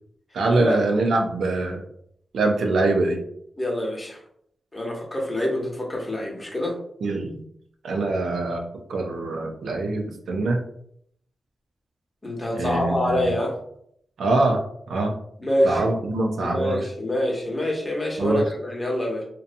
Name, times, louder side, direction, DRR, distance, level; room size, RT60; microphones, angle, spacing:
voice 1, 0.3-1.8 2.3-3.2 7.0-7.4 7.8-8.6 8.9-10.6 12.5-13.3 14.2-14.6 14.9-15.1 15.6-16.8 18.2-18.4, right 2 dB, 85° right, 1 dB, 0.5 m, -23 dB
voice 2, 3.6-4.2 4.7-6.8 12.2-13.5 15.4-15.9 16.4-19.2, left 1 dB, 25° left, -1 dB, 0.9 m, -26 dB
2.6 x 2.2 x 2.6 m, 0.69 s
cardioid pair, 60°, 0 cm